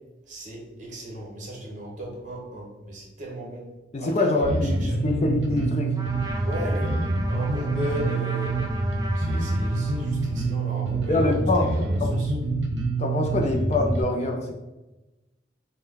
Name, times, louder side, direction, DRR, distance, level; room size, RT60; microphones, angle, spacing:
voice 1, 0.3-3.7 4.0-5.2 6.4-8.6 9.1-11.3 11.6-12.3, equal, 40° right, -3 dB, 1.4 m, -36 dB
voice 2, 3.9-5.9 11.1-11.7 12.0-12.2 13.0-14.5, left 2 dB, 35° left, 2 dB, 0.4 m, -24 dB
Bass guitar, 4.4-14.0, right 2 dB, 70° right, 0.9 m, -26 dB
Trumpet, 5.9-10.5, right 2 dB, 20° right, 0.5 m, -38 dB
5.4 x 2.2 x 3.9 m, 1.1 s
head